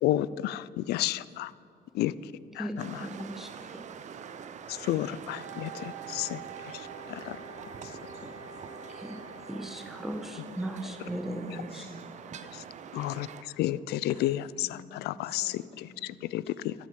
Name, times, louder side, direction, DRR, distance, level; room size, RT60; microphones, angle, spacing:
voice 1, 0.0-1.5 1.9-2.1 2.6-2.7 4.7-6.4 6.7-7.4 12.5-12.6 12.9-15.6 16.0-16.7, left 14 dB, 75° left, 0.4 m, -31 dB
sound 1, 2.8-13.4, right 7 dB, 45° right, 0.6 m, -45 dB
voice 2, 3.0-3.5 9.5-11.8, right 1 dB, ahead, 1.3 m, -36 dB
Wind instrument woodwind instrument, 5.3-10.1, right 5 dB, 20° right, 1.3 m, -46 dB
voice 3, 11.7-12.5 14.3-16.3, left 4 dB, 35° left, 0.9 m, -51 dB
13.5 x 6.4 x 7.3 m
cardioid pair, 110°, 17 cm